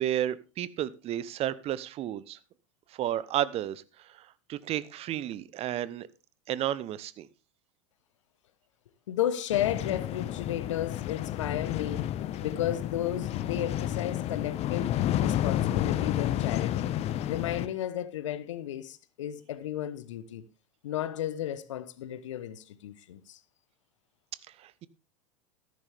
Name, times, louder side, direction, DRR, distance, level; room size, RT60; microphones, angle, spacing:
voice 1, 0.0-2.4 2.9-6.1 6.5-7.3 24.6-24.9, right 12 dB, 40° right, 0.9 m, -32 dB
voice 2, 9.1-16.9 17.3-20.4 20.8-23.4, left 11 dB, 75° left, 1.1 m, -33 dB
sound 1, 9.5-17.7, left 12 dB, 40° left, 0.9 m, -30 dB
13.5 x 11.0 x 3.5 m
hypercardioid pair, 90°, 16 cm